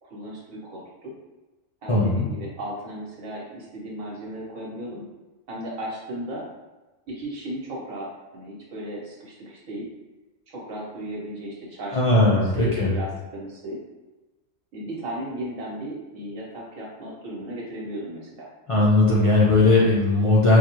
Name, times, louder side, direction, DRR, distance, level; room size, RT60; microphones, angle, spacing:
voice 1, 0.0-1.1 1.8-5.0 5.5-6.5 7.1-9.9 10.5-13.8 14.7-18.5, right 1 dB, 90° right, -4 dB, 1.5 m, -35 dB
voice 2, 1.9-2.3 11.9-12.9 18.7-20.6, left 2 dB, 45° left, -6 dB, 0.4 m, -18 dB
4.6 x 2.3 x 2.9 m, 1.1 s
omnidirectional pair, 1.4 m